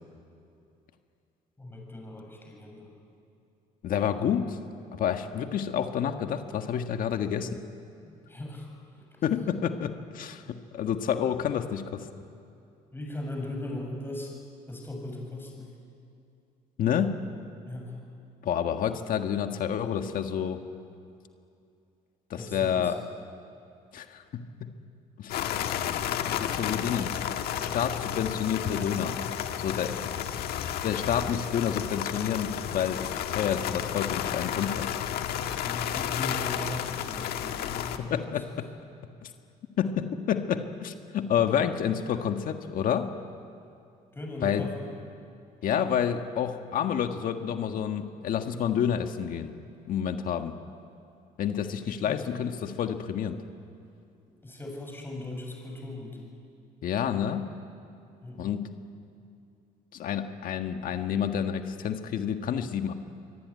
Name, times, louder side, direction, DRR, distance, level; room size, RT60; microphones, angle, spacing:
voice 1, 1.6-2.9 8.0-9.0 12.9-14.3 14.7-15.8 17.7-18.0 22.3-22.9 29.9-30.3 35.6-38.4 44.1-44.9 52.0-52.3 54.3-56.2 58.2-58.4, left 1 dB, 15° left, 1 dB, 7.2 m, -39 dB
voice 2, 3.8-4.6 4.9-7.6 9.2-12.1 16.8-17.2 18.4-20.6 22.3-23.0 23.9-24.7 25.2-25.3 26.4-27.1 27.6-29.2 29.6-30.0 30.8-34.9 38.0-38.7 39.2-39.3 39.8-43.1 44.4-44.7 45.6-49.5 49.9-50.6 51.4-53.4 56.8-57.5 58.4-58.7 59.9-62.9, left 8 dB, 60° left, 6 dB, 1.6 m, -29 dB
sound 1, 25.3-38.0, left 9 dB, 75° left, 1.6 m, -32 dB
24.5 x 23.5 x 9.6 m, 2.6 s
cardioid pair, 120°, 16 cm